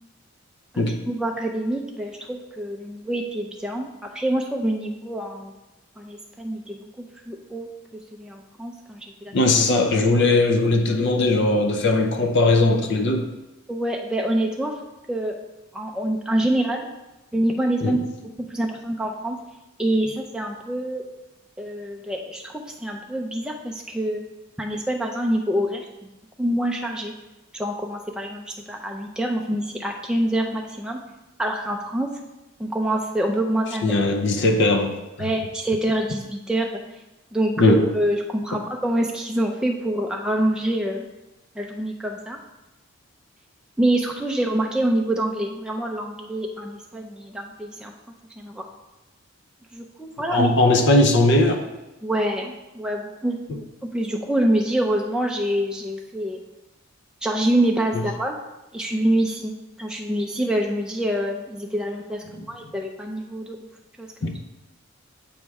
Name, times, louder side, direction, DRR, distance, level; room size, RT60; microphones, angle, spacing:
voice 1, 0.7-5.5 6.0-7.7 8.1-9.3 13.7-14.7 15.1-15.3 15.7-16.9 17.3-18.0 18.5-19.4 19.8-21.0 21.6-24.2 24.6-26.1 26.4-27.1 27.5-31.0 31.4-32.1 32.6-33.9 35.2-36.8 37.3-41.0 41.6-42.4 43.8-47.9 48.4-48.6 49.7-50.5 52.0-53.7 53.9-56.4 57.2-58.3 58.7-63.6 64.0-64.4, right 1 dB, 5° right, 0 dB, 0.4 m, -26 dB
voice 2, 9.3-13.3 17.8-18.0 33.8-35.0 37.6-37.8 50.3-51.6 64.2-64.3, left 2 dB, 55° left, 5 dB, 0.5 m, -19 dB
7.1 x 3.2 x 4.6 m, 1.0 s
head